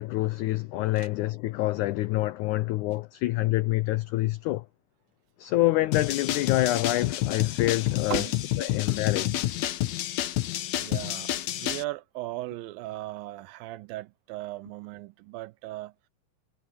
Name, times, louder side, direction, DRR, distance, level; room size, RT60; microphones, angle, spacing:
voice 1, 0.0-4.6 5.4-8.2 8.6-9.5, left 17 dB, 85° left, 1.7 m, -27 dB
sound 1, 5.9-11.8, left 14 dB, 70° left, 1.8 m, -29 dB
voice 2, 10.7-15.9, right 16 dB, 80° right, 2.4 m, -37 dB
omnidirectional pair, 4.2 m